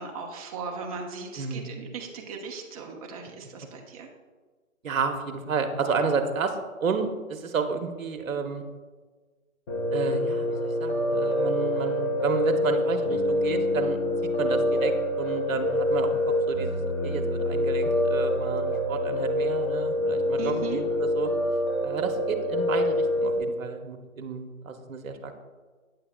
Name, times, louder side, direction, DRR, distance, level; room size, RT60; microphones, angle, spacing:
voice 1, 0.0-4.1 20.4-20.8, right 5 dB, 25° right, 1 dB, 0.9 m, -37 dB
voice 2, 1.4-1.7 4.8-6.6 6.8-8.6 9.9-14.0 14.4-21.3 21.8-25.4, right 5 dB, 70° right, 6 dB, 1.0 m, -31 dB
Piano, 9.7-23.4, left 1 dB, 15° left, 0.8 m, -26 dB
9.5 x 6.7 x 2.2 m, 1.4 s
hypercardioid pair, 145°, 41 cm